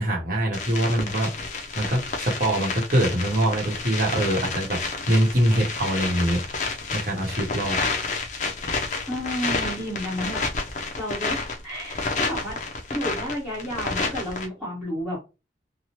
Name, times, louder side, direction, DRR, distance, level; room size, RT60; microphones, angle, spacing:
voice 1, 0.0-1.3 1.7-6.4 6.9-7.8, right 1 dB, 50° right, 0.9 m, -23 dB
sound 1, 0.5-14.5, left 4 dB, 40° left, 0.5 m, -30 dB
voice 2, 9.1-10.4 10.8-12.6 12.9-15.2, equal, 5° right, 1.0 m, -31 dB
3.0 x 2.1 x 2.8 m
head